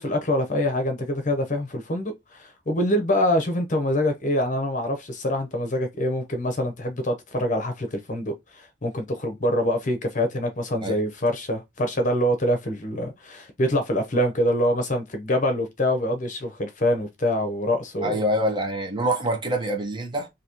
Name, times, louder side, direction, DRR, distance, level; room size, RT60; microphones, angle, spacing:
voice 1, 0.0-18.2, left 1 dB, 45° left, 0.8 m, -25 dB
voice 2, 18.0-20.3, right 1 dB, 25° right, 0.9 m, -25 dB
4.0 x 2.8 x 2.9 m
head